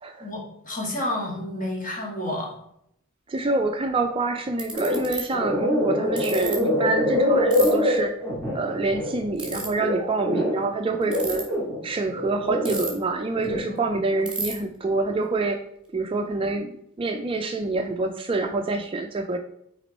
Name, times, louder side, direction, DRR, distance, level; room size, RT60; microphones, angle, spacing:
voice 1, 0.2-2.5 13.7-14.0, left 1 dB, 35° left, -2 dB, 1.8 m, -30 dB
voice 2, 3.3-8.1 8.5-11.5 11.8-15.6 15.9-19.4, right 3 dB, 25° right, 5 dB, 0.3 m, -26 dB
Ratchet pawl, 3.9-4.0 4.6-5.2 6.2-6.5 7.5-7.7 9.3-9.7 11.0-11.4 12.6-13.1 13.4-13.5 13.7-13.8 14.2-14.5, right 3 dB, 5° right, 1.2 m, -31 dB
sound 1, 4.7-5.0 5.3-10.6 11.0-12.8 13.2-13.6, left 1 dB, 10° left, 2.1 m, -24 dB
6.0 x 4.3 x 4.1 m, 0.75 s
head